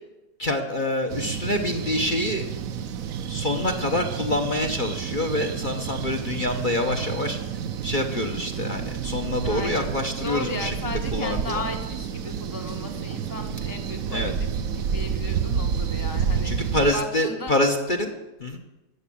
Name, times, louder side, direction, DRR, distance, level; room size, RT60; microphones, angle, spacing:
voice 1, 0.4-2.4 3.3-7.4 7.8-10.7 11.1-11.6 14.1-14.3 16.4-18.1 18.4-18.6, left 1 dB, 35° left, 4 dB, 1.0 m, -26 dB
sound 1, 1.1-16.9, right 7 dB, 60° right, 1.1 m, -30 dB
voice 2, 9.4-14.5 14.8-17.5, left 1 dB, 15° right, 3 dB, 0.8 m, -35 dB
13.5 x 8.1 x 8.6 m, 1.0 s
omnidirectional pair, 1.9 m